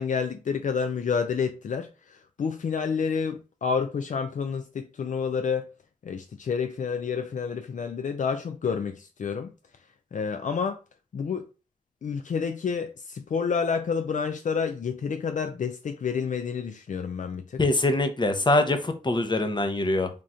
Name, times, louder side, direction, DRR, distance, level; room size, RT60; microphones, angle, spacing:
voice 1, 0.0-5.7 6.0-9.5 10.1-10.8 11.1-11.5 12.0-17.6, left 6 dB, 70° left, 0.4 m, -29 dB
voice 2, 17.6-20.1, left 2 dB, 35° left, 0.8 m, -23 dB
3.7 x 2.5 x 4.2 m
cardioid pair, 60°, 14 cm